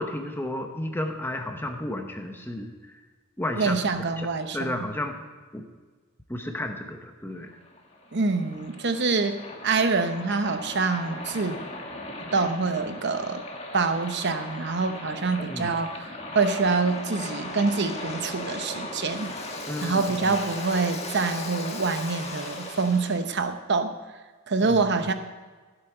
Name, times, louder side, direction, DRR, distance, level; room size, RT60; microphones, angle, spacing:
voice 1, 0.0-3.0 3.4-3.8 4.2-4.3 4.5-5.1 5.5-5.6 6.3-7.5 15.5-15.8 19.7-20.3 24.6-24.8, left 1 dB, 10° left, 4 dB, 0.9 m, -32 dB
voice 2, 3.6-4.9 8.1-11.6 12.3-13.4 13.7-16.1 16.3-19.4 19.8-24.0 24.5-25.1, right 4 dB, 55° right, 8 dB, 0.9 m, -26 dB
Waves surf, 7.5-23.3, left 2 dB, 30° left, 1.5 m, -37 dB
15.0 x 8.2 x 4.5 m, 1.4 s
head